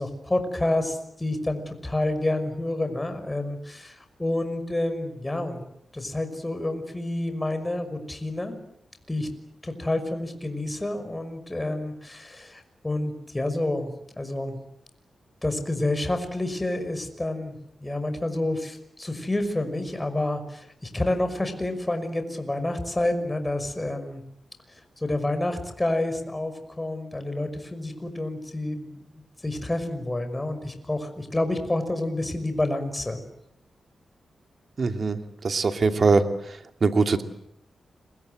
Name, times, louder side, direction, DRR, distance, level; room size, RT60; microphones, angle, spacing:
voice 1, 0.0-5.6 5.9-8.6 9.1-9.3 9.6-13.9 14.2-14.6 15.4-17.6 17.8-24.2 25.0-33.2, left 1 dB, 20° left, 8 dB, 5.8 m, -29 dB
voice 2, 34.8-35.2 35.4-36.2 36.8-37.2, right 4 dB, 55° right, 7 dB, 2.7 m, -21 dB
30.0 x 23.0 x 8.0 m, 0.77 s
cardioid pair, 75°, 0 cm